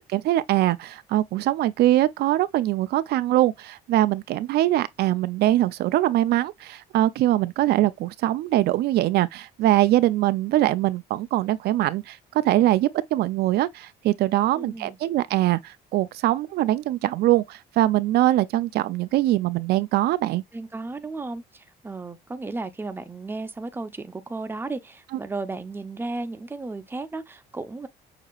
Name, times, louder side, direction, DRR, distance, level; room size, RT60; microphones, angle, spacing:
voice 1, 0.1-12.2 12.4-20.4, right 15 dB, 75° right, 0.5 m, -22 dB
voice 2, 14.5-15.0 20.5-27.9, right 3 dB, 15° right, 0.7 m, -34 dB
6.6 x 2.8 x 2.4 m
cardioid pair, 110°, 17 cm